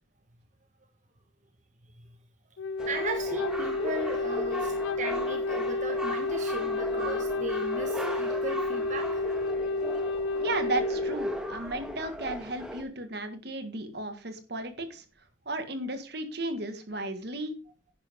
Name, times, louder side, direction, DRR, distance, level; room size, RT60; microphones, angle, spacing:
Wind instrument woodwind instrument, 2.6-11.2, left 3 dB, 75° left, 0.5 m, -30 dB
sound 1, 2.8-12.8, equal, 5° right, 1.6 m, -38 dB
voice 1, 2.9-9.2, right 2 dB, 40° right, 4 dB, 1.4 m, -37 dB
voice 2, 10.4-15.0 15.5-17.5, right 2 dB, 55° right, 8 dB, 1.8 m, -34 dB
10.5 x 10.0 x 3.7 m, 0.32 s
head